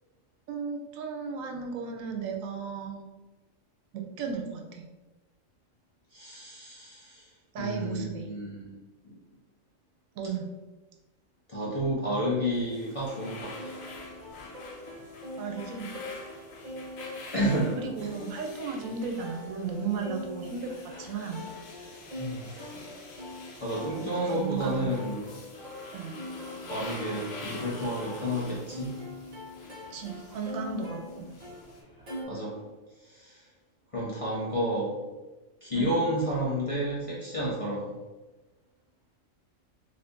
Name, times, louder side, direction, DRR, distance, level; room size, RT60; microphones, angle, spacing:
voice 1, 0.5-3.0 3.9-4.8 7.5-8.3 10.2-10.5 15.4-15.9 17.8-20.7 21.0-21.4 22.5-22.9 24.2-25.0 25.9-26.2 29.9-31.3 35.8-36.0, right 5 dB, 85° right, 3 dB, 1.0 m, -35 dB
voice 2, 6.1-7.3 7.6-8.8 9.0-9.1 11.5-13.8 17.3-17.8 22.2-22.5 23.6-25.2 26.7-28.9 32.3-32.6 33.0-33.5 33.9-35.0 35.6-37.9, equal, 40° left, -7 dB, 0.5 m, -31 dB
sound 1, 12.5-31.8, left 2 dB, 90° left, 1.2 m, -47 dB
Plucked string instrument, 13.3-32.2, left 1 dB, 35° right, 0.8 m, -43 dB
2.8 x 2.6 x 3.5 m, 1.2 s
omnidirectional pair, 1.4 m